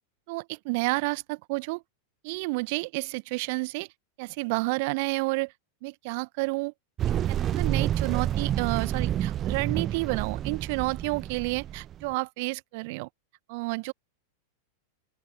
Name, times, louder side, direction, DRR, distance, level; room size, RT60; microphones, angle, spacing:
voice 1, 0.3-1.8 2.2-3.9 4.2-5.5 5.8-6.7 7.3-13.1 13.5-13.9, right 27 dB, 50° right, 1.2 m, -30 dB
sound 1, 7.0-12.1, right 11 dB, 30° right, 0.6 m, -29 dB
open air
figure-of-eight pair, 90°, 0 cm